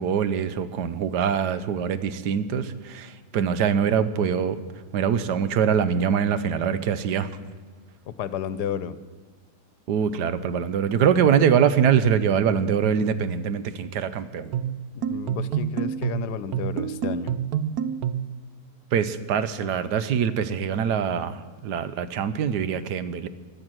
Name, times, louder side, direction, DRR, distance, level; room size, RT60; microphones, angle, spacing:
voice 1, 0.0-4.6 4.9-7.4 9.9-14.5 18.9-23.3, right 7 dB, 90° right, 13 dB, 1.4 m, -23 dB
voice 2, 8.1-9.0 14.9-17.3, left 9 dB, 85° left, 15 dB, 1.3 m, -32 dB
sound 1, 14.5-18.4, right 9 dB, 75° right, 1.1 m, -28 dB
16.5 x 11.5 x 6.2 m, 1.4 s
omnidirectional pair, 1.7 m